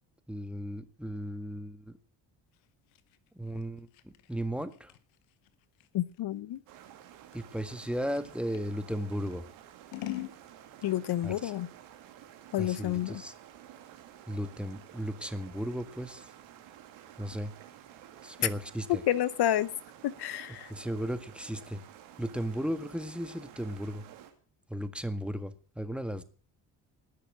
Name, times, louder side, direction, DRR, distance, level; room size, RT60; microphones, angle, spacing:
voice 1, 0.3-2.0 3.3-4.9 7.3-9.4 11.2-11.5 12.6-13.3 14.3-16.3 17.2-17.5 18.2-19.0 20.7-21.8 22.2-24.0 24.7-26.2, equal, ahead, 10 dB, 1.7 m, -35 dB
Scissors, 2.5-8.7 9.2-10.4, left 15 dB, 85° left, 1.1 m, -44 dB
voice 2, 5.9-6.6 10.8-11.7 12.5-13.2 18.4-18.5 19.1-19.7 20.0-20.7, left 12 dB, 60° left, 17 dB, 0.8 m, -29 dB
sound 1, 6.7-24.3, right 11 dB, 85° right, 2.6 m, -52 dB
19.0 x 6.6 x 7.7 m, 0.42 s
supercardioid pair, 60°, 44 cm